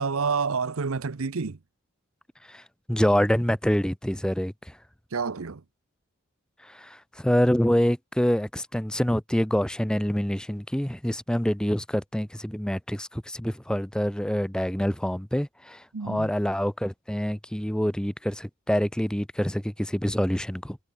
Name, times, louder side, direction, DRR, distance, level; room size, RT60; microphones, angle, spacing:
voice 1, 0.0-1.6 5.1-5.6 15.9-16.3, right 5 dB, 80° right, 0.8 m, -28 dB
voice 2, 2.5-4.8 6.6-20.8, equal, 5° left, 0.6 m, -26 dB
head